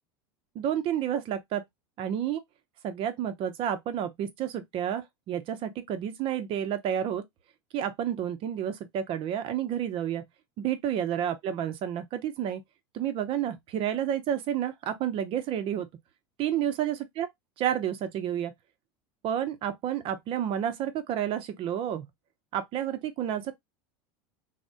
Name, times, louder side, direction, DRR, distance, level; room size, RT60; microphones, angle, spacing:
voice 1, 0.5-1.6 2.0-2.4 2.8-7.2 7.7-10.2 10.6-12.6 12.9-15.9 16.4-17.3 17.6-18.5 19.2-22.1 22.5-23.5, right 10 dB, 45° right, 0.6 m, -30 dB
3.3 x 2.1 x 2.5 m
supercardioid pair, 115°, 12 cm